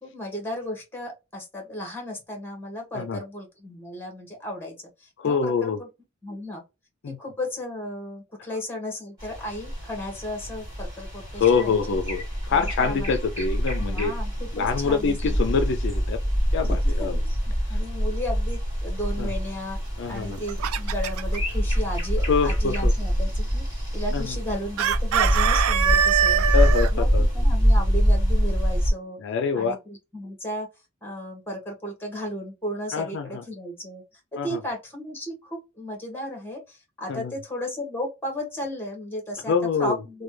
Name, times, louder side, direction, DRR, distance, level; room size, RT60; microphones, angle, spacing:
voice 1, 0.0-5.9 6.2-6.6 7.1-12.0 12.5-13.4 13.8-15.6 16.6-19.8 20.1-26.5 26.9-29.2 29.5-30.7 31.0-34.0 34.3-39.5 39.8-40.2, left 1 dB, 10° left, 1.4 m, -35 dB
voice 2, 5.2-5.8 7.0-7.2 11.4-14.1 14.5-16.2 16.5-17.1 17.7-17.8 19.2-19.3 20.0-20.4 22.3-22.9 24.1-24.4 26.5-27.2 29.2-29.8 32.9-33.4 34.4-34.6 37.1-37.3 39.5-40.0, left 5 dB, 60° left, 0.4 m, -25 dB
sound 1, 9.2-28.9, equal, 20° right, 2.1 m, -25 dB
Chicken rooster, 20.2-21.4 24.8-26.9, right 9 dB, 85° right, 0.3 m, -23 dB
3.2 x 2.2 x 3.1 m
head